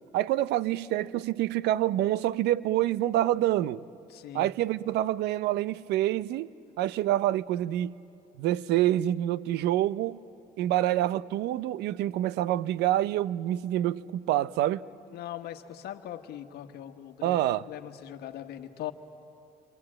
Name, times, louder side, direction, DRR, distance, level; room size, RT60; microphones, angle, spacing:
voice 1, 0.1-3.8 4.3-6.5 6.8-8.0 8.4-10.2 10.6-14.9 17.2-17.7, right 13 dB, 80° right, 0.6 m, -27 dB
voice 2, 4.1-4.5 15.1-18.9, left 11 dB, 70° left, 1.4 m, -40 dB
27.0 x 24.5 x 8.8 m
cardioid pair, 110°, 17 cm